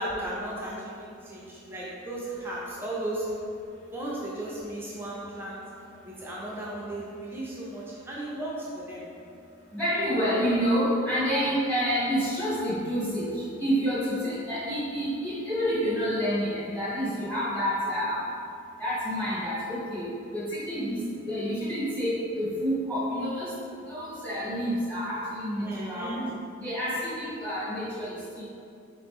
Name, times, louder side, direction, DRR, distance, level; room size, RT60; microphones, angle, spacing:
voice 1, 0.0-5.7 6.0-9.1 25.6-26.2, right 1 dB, 10° right, -6 dB, 0.4 m, -35 dB
voice 2, 9.7-18.2 18.8-20.0 20.3-21.0 21.2-23.5 23.9-26.2 26.6-28.4, equal, 5° left, -11 dB, 1.1 m, -28 dB
3.8 x 2.9 x 3.5 m, 2.5 s
head